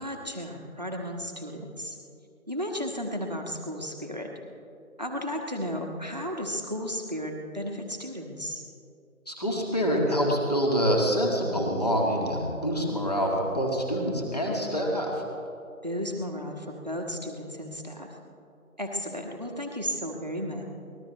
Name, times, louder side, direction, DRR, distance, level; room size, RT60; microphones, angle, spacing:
voice 1, 0.0-2.0 2.5-4.3 5.0-8.6 15.8-18.1 18.8-20.7, equal, 30° right, 2 dB, 1.3 m, -34 dB
voice 2, 9.3-15.2, equal, 25° left, -1 dB, 1.9 m, -26 dB
24.0 x 19.5 x 3.1 m, 2.7 s
figure-of-eight pair, 180°, 43 cm